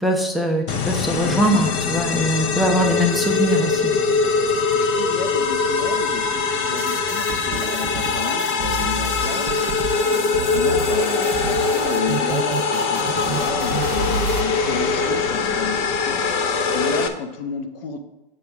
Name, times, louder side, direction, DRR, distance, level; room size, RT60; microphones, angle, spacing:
voice 1, 0.0-3.8, equal, ahead, 4 dB, 0.7 m, -21 dB
sound 1, 0.7-17.1, left 4 dB, 45° left, 0.9 m, -22 dB
voice 2, 4.7-9.6 10.1-16.2 16.7-18.0, left 5 dB, 70° left, 7 dB, 1.1 m, -32 dB
sound 2, 6.8-14.4, right 6 dB, 35° right, 0.8 m, -30 dB
7.6 x 6.5 x 3.5 m, 1.1 s
hypercardioid pair, 130°, 29 cm